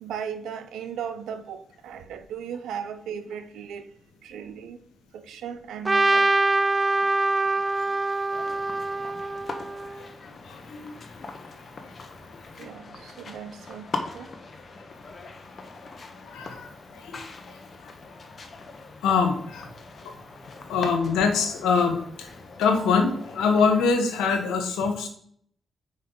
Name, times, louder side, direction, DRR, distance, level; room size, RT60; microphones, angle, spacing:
voice 1, 0.0-3.9 4.2-4.8 5.1-6.3 12.6-14.3, right 7 dB, 85° right, 0.5 m, -37 dB
Trumpet, 5.8-10.0, right 2 dB, 30° right, 0.3 m, -24 dB
sound 1, 8.3-23.6, left 3 dB, 50° left, 1.0 m, -41 dB
voice 2, 10.4-11.0 12.6-12.7 16.2-17.9 19.0-19.7 20.0-20.1 20.7-22.3 22.6-25.1, left 5 dB, 90° left, 1.0 m, -24 dB
5.5 x 4.4 x 3.8 m
supercardioid pair, 55°, 0 cm